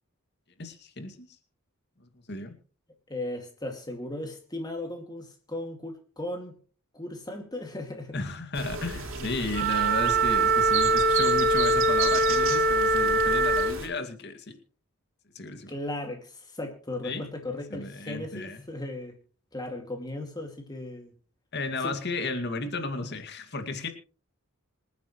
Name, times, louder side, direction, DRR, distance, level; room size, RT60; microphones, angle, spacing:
voice 1, 0.6-1.3 2.3-2.6 8.1-14.6 15.3-15.7 17.0-17.3 17.7-18.6 21.5-23.9, left 3 dB, 50° left, 7 dB, 2.3 m, -34 dB
voice 2, 3.1-6.6 6.9-8.2 9.0-9.3 9.6-9.7 15.7-19.2 19.5-21.1 21.8-22.0, left 1 dB, 20° left, 3 dB, 2.3 m, -37 dB
sound 1, 8.5-13.9, right 4 dB, 65° right, 3.4 m, -34 dB
Wind instrument woodwind instrument, 9.5-13.8, right 2 dB, 40° right, 0.8 m, -23 dB
26.5 x 9.6 x 3.2 m, 0.40 s
head